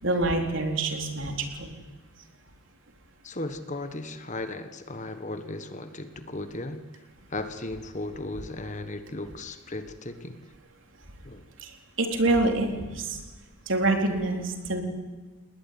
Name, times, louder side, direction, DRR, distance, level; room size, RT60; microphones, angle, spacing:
voice 1, 0.0-1.7 11.6-13.2 13.7-14.8, right 2 dB, 60° right, 3 dB, 3.9 m, -26 dB
voice 2, 3.2-6.8 7.3-10.5 11.2-11.5, left 2 dB, 35° left, 9 dB, 1.4 m, -36 dB
29.0 x 20.0 x 9.4 m, 1.3 s
head